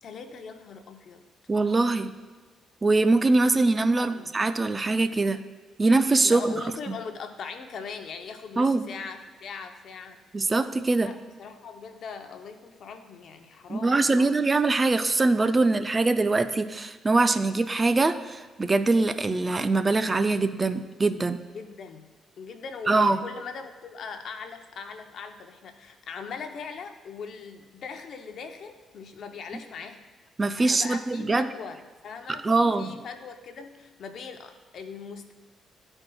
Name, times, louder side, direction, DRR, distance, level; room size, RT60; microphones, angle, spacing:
voice 1, 0.0-1.2 4.0-4.3 6.2-10.2 11.0-14.4 21.5-22.1 22.4-30.0 30.7-35.3, left 5 dB, 65° left, 6 dB, 0.6 m, -40 dB
voice 2, 1.5-2.1 2.8-5.4 5.8-6.6 8.6-8.9 10.3-11.1 13.7-21.4 22.9-23.2 30.4-31.5 32.4-33.0, right 3 dB, 25° right, 10 dB, 0.3 m, -23 dB
13.0 x 4.4 x 2.3 m, 1.3 s
cardioid pair, 90°, 0 cm